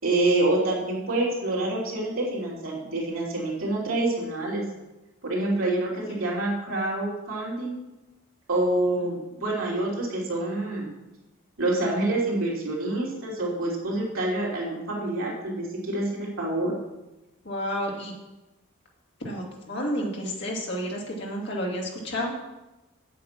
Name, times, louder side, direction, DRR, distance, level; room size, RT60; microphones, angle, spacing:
voice 1, 0.0-4.6 5.2-7.8 8.5-10.9 11.6-16.8, right 2 dB, 70° right, -4 dB, 3.1 m, -27 dB
voice 2, 17.5-18.1 19.2-22.3, equal, 55° left, -2 dB, 2.2 m, -31 dB
8.3 x 7.9 x 5.9 m, 1.0 s
head